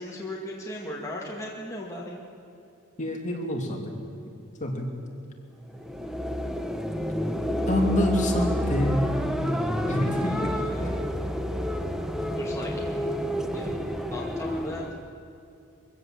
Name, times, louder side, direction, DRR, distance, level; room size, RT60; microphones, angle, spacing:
voice 1, 0.0-2.2 10.3-11.0 12.4-12.7 13.5-13.8 14.1-14.8, left 1 dB, 15° left, -3 dB, 2.3 m, -37 dB
voice 2, 3.0-3.9 4.6-4.9 7.7-9.1 9.9-10.5, left 1 dB, 35° left, 1 dB, 2.8 m, -26 dB
sound 1, 5.7-15.1, equal, ahead, 1.0 m, -29 dB
23.5 x 16.0 x 7.8 m, 2.7 s
head